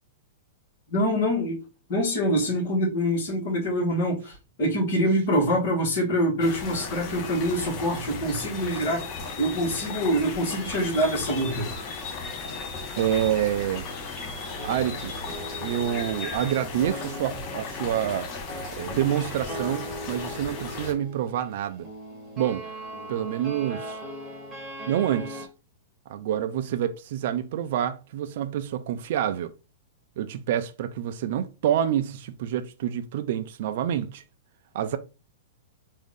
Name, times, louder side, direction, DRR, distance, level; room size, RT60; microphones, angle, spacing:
voice 1, 0.9-1.6 1.9-9.0 9.4-11.7, equal, 50° left, 1.9 m, -25 dB
sound 1, 6.4-20.9, left 4 dB, 30° left, 0.7 m, -36 dB
voice 2, 13.0-13.9 14.6-15.1 15.6-18.3 18.7-21.9 22.4-22.6 23.1-24.0 24.9-25.5 26.1-29.5 30.2-34.2 34.7-35.0, right 10 dB, 50° right, 0.4 m, -27 dB
sound 2, 13.6-14.3 14.6-25.5, right 1 dB, 10° right, 1.3 m, -40 dB
3.6 x 2.6 x 3.7 m
supercardioid pair, 165°, 0 cm